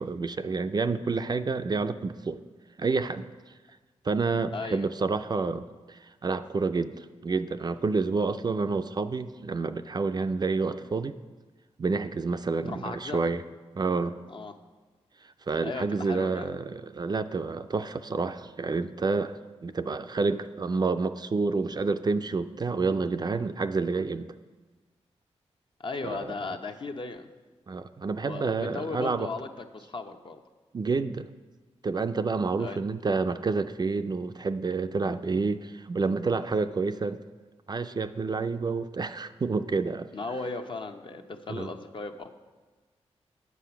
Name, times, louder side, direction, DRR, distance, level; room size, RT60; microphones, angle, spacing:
voice 1, 0.0-2.4 2.8-3.3 4.0-11.1 11.8-13.4 13.8-14.2 15.5-19.3 19.6-24.3 26.0-26.3 27.7-29.3 30.7-31.3 31.8-37.2 37.7-40.1 41.5-41.7, right 4 dB, 40° right, 9 dB, 0.4 m, -29 dB
voice 2, 4.5-4.9 12.7-13.2 14.3-14.5 15.6-16.5 25.8-27.3 28.2-30.4 32.6-32.8 40.1-42.3, left 3 dB, 45° left, 6 dB, 0.7 m, -36 dB
8.2 x 6.9 x 5.7 m, 1.3 s
cardioid pair, 65°, 11 cm